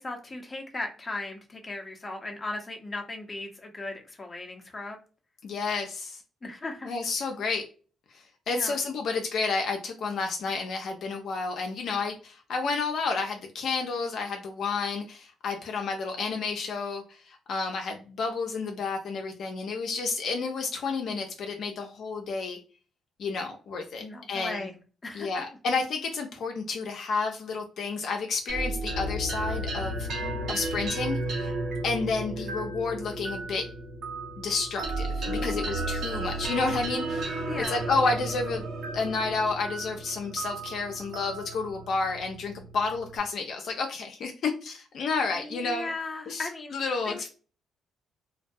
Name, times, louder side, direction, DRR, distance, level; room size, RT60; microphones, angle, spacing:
voice 1, 0.0-5.0 6.4-6.9 8.5-8.8 24.0-25.4 30.2-30.6 35.4-35.5 37.5-37.9 45.4-46.8 47.1-47.3, left 2 dB, 25° left, 2 dB, 0.7 m, -37 dB
voice 2, 5.4-6.2 6.8-7.6 8.1-22.6 23.2-24.7 25.1-31.5 31.8-33.7 34.4-38.6 38.9-45.9 46.3-47.3, left 4 dB, 65° left, 3 dB, 0.5 m, -31 dB
sound 1, 28.5-43.2, right 2 dB, 70° right, 0.8 m, -33 dB
2.2 x 2.2 x 2.6 m, 0.36 s
cardioid pair, 90°, 0 cm